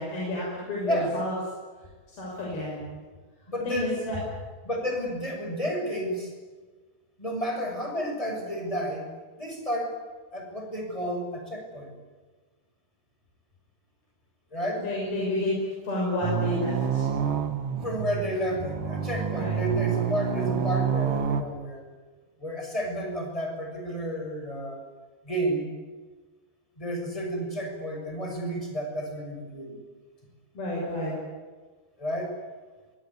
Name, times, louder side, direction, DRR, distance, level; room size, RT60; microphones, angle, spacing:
voice 1, 0.0-1.3 2.2-2.8 3.7-4.2 14.8-15.6 15.9-17.0 19.3-19.6 30.6-31.1, left 1 dB, 75° left, -4 dB, 8.5 m, -30 dB
voice 2, 0.8-1.2 3.5-4.0 4.6-6.3 7.2-9.1 9.4-10.0 10.3-12.0 14.5-14.9 17.7-21.8 22.4-24.8 25.2-25.7 26.8-29.8 32.0-32.4, equal, 10° left, 2 dB, 6.1 m, -31 dB
sound 1, 16.2-21.4, right 8 dB, 55° right, 1.9 m, -28 dB
24.5 x 22.5 x 9.8 m, 1.4 s
omnidirectional pair, 4.4 m